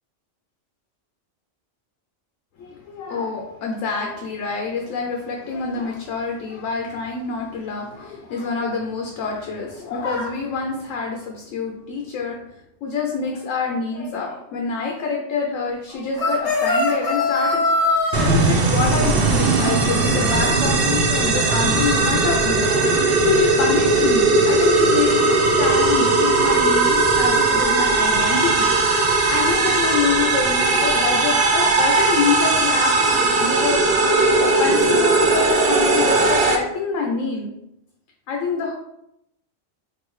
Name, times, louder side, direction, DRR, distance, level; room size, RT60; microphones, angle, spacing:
voice 1, 2.6-12.4 12.8-28.7 29.3-33.8 34.1-37.5 38.3-38.7, left 5 dB, 80° left, 1 dB, 1.0 m, -26 dB
sound 1, 16.2-18.3, left 2 dB, 35° left, 0.7 m, -20 dB
sound 2, 18.1-36.6, right 3 dB, 55° right, 0.8 m, -18 dB
4.6 x 2.6 x 3.1 m, 0.82 s
omnidirectional pair, 1.3 m